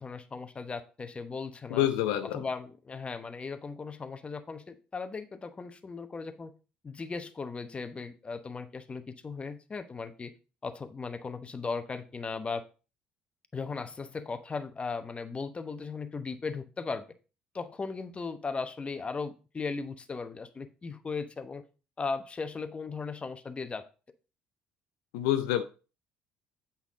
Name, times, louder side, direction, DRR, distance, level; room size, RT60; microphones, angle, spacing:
voice 1, 0.0-1.9 2.2-6.5 6.8-10.3 10.6-12.6 13.5-17.1 17.5-21.6 22.0-23.8, left 4 dB, 30° left, 10 dB, 1.0 m, -37 dB
voice 2, 1.7-2.4 25.1-25.6, left 12 dB, 80° left, 8 dB, 0.6 m, -27 dB
8.3 x 5.8 x 3.7 m, 0.33 s
hypercardioid pair, 60°, 4 cm